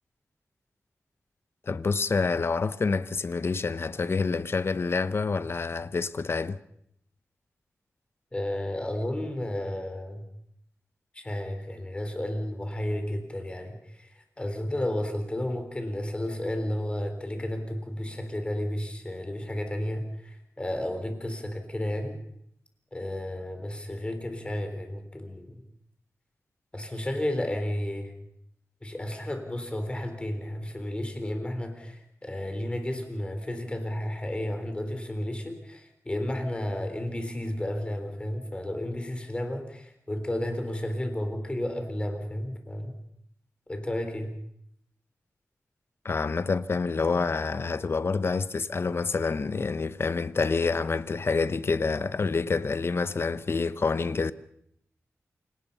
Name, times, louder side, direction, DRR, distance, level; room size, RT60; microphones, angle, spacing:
voice 1, 1.7-6.6 46.0-54.3, left 4 dB, 50° left, 0.9 m, -27 dB
voice 2, 8.3-10.2 11.1-22.2 22.9-25.6 26.7-28.1 28.8-42.9 43.7-44.3, left 1 dB, 20° left, 3.8 m, -32 dB
27.5 x 18.0 x 5.5 m
wide cardioid pair, 120°, 5 cm